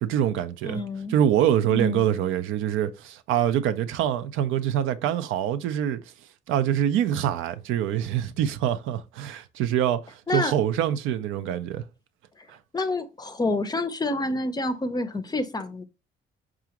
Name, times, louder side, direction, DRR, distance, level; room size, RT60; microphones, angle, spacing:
voice 1, 0.0-0.8 1.1-6.0 6.5-11.8 12.5-12.6, right 10 dB, 90° right, 0.5 m, -25 dB
voice 2, 0.6-1.2 1.7-2.1 10.3-10.5 12.4-12.5 12.7-15.8, left 2 dB, 20° left, 0.5 m, -28 dB
4.8 x 2.4 x 2.8 m
cardioid pair, 90°, 20 cm